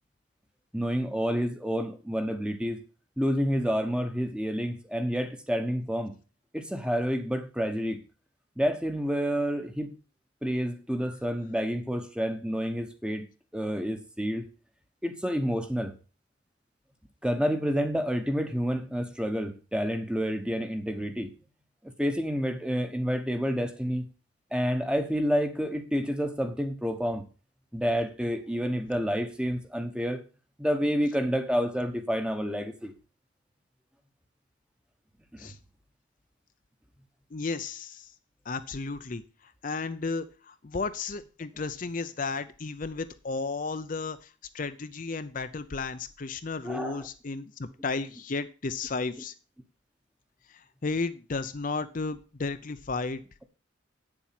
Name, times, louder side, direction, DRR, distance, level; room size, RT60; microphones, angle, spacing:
voice 1, 0.7-2.8 3.2-6.1 6.5-8.0 8.6-9.9 10.4-13.3 13.5-14.5 15.0-15.9 17.2-21.3 21.8-24.1 24.5-27.2 27.7-30.2 30.6-32.9 35.3-35.5 46.6-47.1, equal, 5° right, 1.0 m, -29 dB
voice 2, 37.3-38.1 38.5-49.3 50.5-53.2, left 4 dB, 40° left, 0.6 m, -34 dB
8.8 x 7.2 x 5.8 m
head